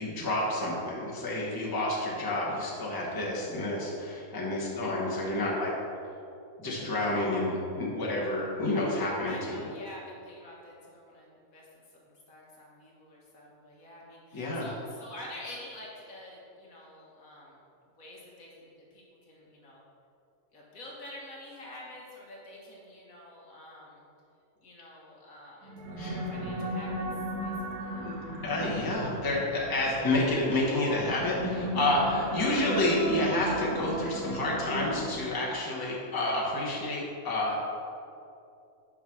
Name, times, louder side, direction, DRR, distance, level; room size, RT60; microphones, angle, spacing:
voice 1, 0.0-5.7 6.6-9.7 14.3-14.7 26.0-26.1 28.0-28.2 28.4-37.6, left 1 dB, 15° left, -5 dB, 1.3 m, -29 dB
voice 2, 9.2-17.6 18.0-19.8 20.5-24.0 24.6-27.1 27.4-28.1, left 1 dB, 65° left, -4 dB, 1.8 m, -48 dB
sound 1, 25.6-35.5, right 1 dB, 80° right, 1.4 m, -36 dB
6.2 x 5.5 x 6.1 m, 2.6 s
omnidirectional pair, 1.6 m